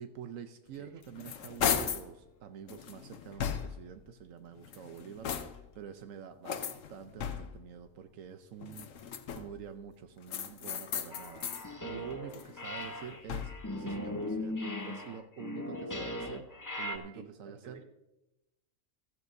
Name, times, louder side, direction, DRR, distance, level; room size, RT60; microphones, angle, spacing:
voice 1, 0.0-13.5 13.8-17.8, right 8 dB, 85° right, 8 dB, 1.1 m, -47 dB
sound 1, 0.8-2.1 2.7-4.0 4.6-5.8 6.4-7.7 8.6-9.6 10.3-11.7 12.1-13.8, left 8 dB, 80° left, 1.2 m, -37 dB
sound 2, 11.1-12.3 12.6-17.0, left 1 dB, 20° left, 0.7 m, -38 dB
voice 2, 16.9-17.8, right 4 dB, 55° right, 4 dB, 1.5 m, -52 dB
15.5 x 14.0 x 2.6 m, 0.94 s
omnidirectional pair, 1.3 m